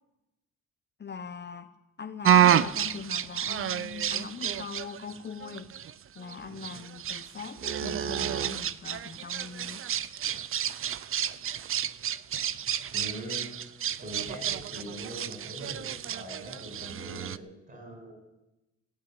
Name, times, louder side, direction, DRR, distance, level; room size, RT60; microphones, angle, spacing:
voice 1, 1.0-1.7 2.0-5.7 6.2-9.8, left 6 dB, 35° left, 7 dB, 1.0 m, -41 dB
sound 1, 2.2-17.4, right 9 dB, 45° right, 0.6 m, -29 dB
voice 2, 12.9-18.1, equal, 30° right, 4 dB, 5.9 m, -42 dB
16.5 x 8.9 x 9.1 m, 0.97 s
cardioid pair, 90°, 30 cm